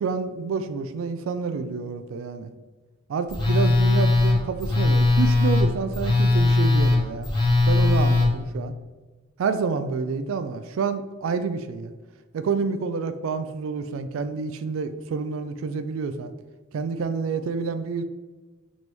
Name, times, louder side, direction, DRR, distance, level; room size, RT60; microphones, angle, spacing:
voice 1, 0.0-2.5 3.1-7.3 7.7-8.7 9.4-11.9 12.3-16.3 16.7-18.0, right 5 dB, 70° right, 10 dB, 0.3 m, -28 dB
Telephone, 3.3-8.3, left 2 dB, 20° left, 1.1 m, -19 dB
4.2 x 3.0 x 3.3 m, 1.3 s
head